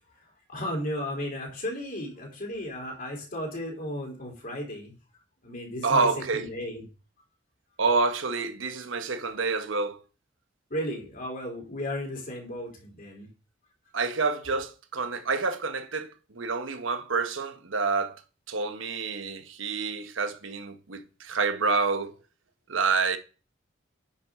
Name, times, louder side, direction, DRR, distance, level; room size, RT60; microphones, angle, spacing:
voice 1, 0.5-4.9 5.4-6.8 10.7-13.3, left 1 dB, 45° left, 3.4 m, -34 dB
voice 2, 5.8-6.5 7.8-10.0 13.9-18.2 18.5-22.1 22.7-23.2, right 4 dB, 85° right, 1.1 m, -28 dB
10.0 x 6.2 x 3.7 m
head